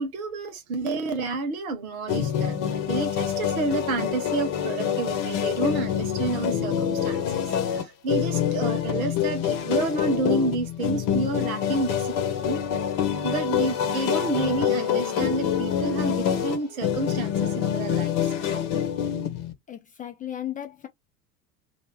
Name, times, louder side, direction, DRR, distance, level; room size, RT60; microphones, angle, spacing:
voice 1, 0.0-12.6 13.2-18.6, right 3 dB, 65° right, 1.1 m, -30 dB
sound 1, 2.1-19.5, left 9 dB, 45° left, 0.9 m, -26 dB
voice 2, 19.7-20.9, left 11 dB, 20° left, 0.5 m, -35 dB
2.6 x 2.1 x 3.3 m
figure-of-eight pair, 75°, 45 cm